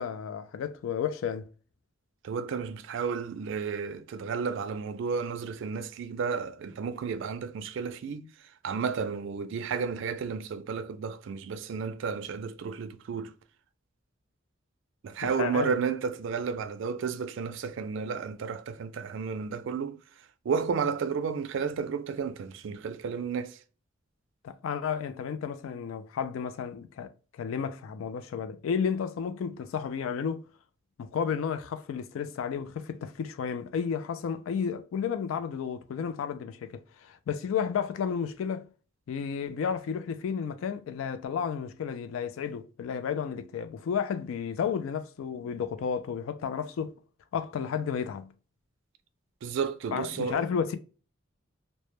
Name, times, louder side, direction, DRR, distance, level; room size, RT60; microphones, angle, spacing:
voice 1, 0.0-1.5 15.2-15.7 24.4-30.4 31.0-38.6 39.1-46.9 47.3-48.3 49.9-50.8, left 7 dB, 80° left, 0.3 m, -32 dB
voice 2, 2.2-8.3 8.6-13.3 15.0-20.0 20.5-23.6 49.4-50.4, right 5 dB, 65° right, 0.3 m, -32 dB
2.1 x 2.1 x 2.9 m
head